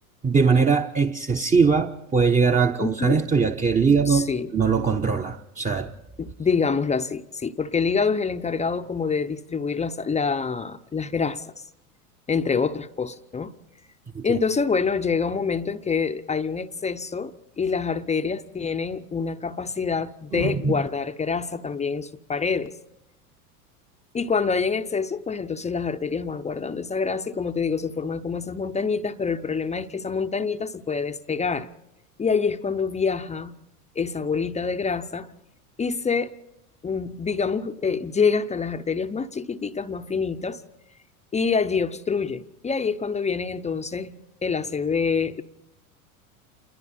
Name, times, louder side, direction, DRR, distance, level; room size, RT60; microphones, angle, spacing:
voice 1, 0.2-4.3 4.5-5.9 14.1-14.4 20.3-20.8, right 5 dB, 15° right, 0.9 m, -21 dB
voice 2, 2.8-3.2 4.1-4.5 6.2-11.4 12.3-13.5 14.2-22.7 24.1-31.7 32.2-33.6 34.0-35.3 35.8-36.3 36.8-40.6 41.3-45.4, left 5 dB, 15° left, 0.7 m, -26 dB
28.0 x 21.5 x 4.3 m
hypercardioid pair, 95°, 45 cm